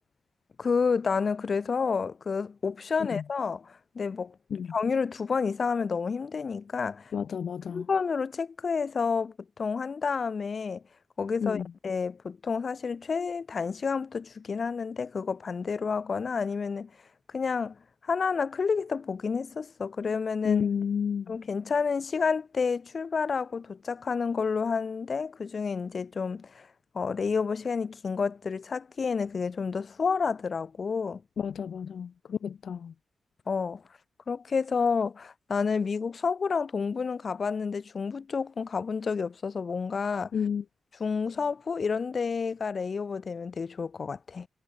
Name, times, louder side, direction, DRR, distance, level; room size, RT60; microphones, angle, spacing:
voice 1, 0.6-4.3 4.7-7.1 7.7-10.8 11.2-16.9 17.3-20.7 21.3-26.7 26.9-31.2 33.5-33.8 34.3-40.3 41.0-44.5, left 5 dB, 50° left, 1.6 m, -30 dB
voice 2, 7.1-7.9 11.4-11.7 20.4-21.3 31.4-32.9 40.3-40.6, left 7 dB, 70° left, 1.1 m, -30 dB
cardioid pair, 70°, 0 cm